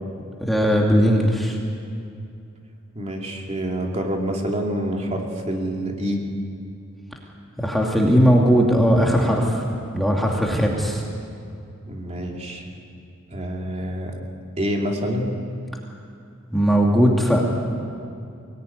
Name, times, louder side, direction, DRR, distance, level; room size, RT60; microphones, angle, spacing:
voice 1, 0.4-1.6 7.6-9.6 9.9-11.0 16.5-17.4, equal, ahead, -1 dB, 2.4 m, -18 dB
voice 2, 2.9-6.3 11.9-12.6 13.3-14.2 14.6-15.3, equal, 30° right, 0 dB, 2.8 m, -27 dB
24.0 x 19.0 x 10.0 m, 2.5 s
head